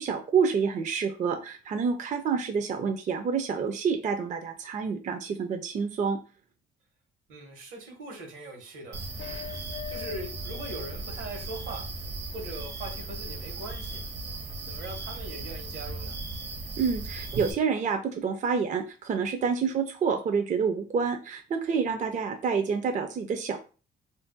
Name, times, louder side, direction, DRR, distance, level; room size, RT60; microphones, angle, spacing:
voice 1, 0.0-6.2 16.8-23.6, right 6 dB, 40° right, 6 dB, 0.4 m, -28 dB
voice 2, 7.3-9.0 9.5-11.9 12.3-14.0 14.7-16.2, right 2 dB, 80° right, 2 dB, 1.2 m, -41 dB
sound 1, 8.9-17.5, right 2 dB, 65° right, 0.7 m, -37 dB
sound 2, 9.2-11.0 11.3-11.4, left 10 dB, 70° left, 0.6 m, -42 dB
2.5 x 2.1 x 3.7 m, 0.35 s
cardioid pair, 90°, 20 cm